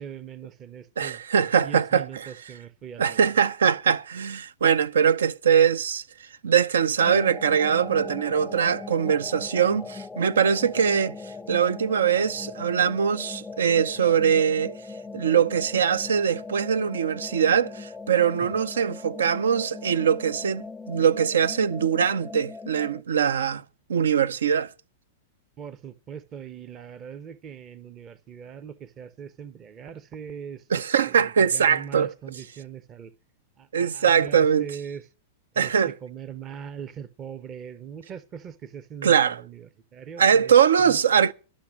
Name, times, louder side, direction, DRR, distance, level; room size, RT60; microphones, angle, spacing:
voice 1, 0.0-1.2 1.6-3.3 18.4-18.6 25.6-33.1 33.6-35.1 35.5-41.0, right 8 dB, 30° right, 0.7 m, -41 dB
voice 2, 1.0-2.0 3.0-6.0 6.4-11.2 11.5-14.8 15.1-23.6 23.9-24.7 30.7-32.1 33.7-34.7 35.6-35.9 39.0-39.4 40.2-41.3, right 7 dB, 80° right, 0.5 m, -22 dB
sound 1, 7.0-23.0, left 4 dB, 5° left, 0.6 m, -40 dB
11.5 x 6.2 x 8.7 m
hypercardioid pair, 105°, 0 cm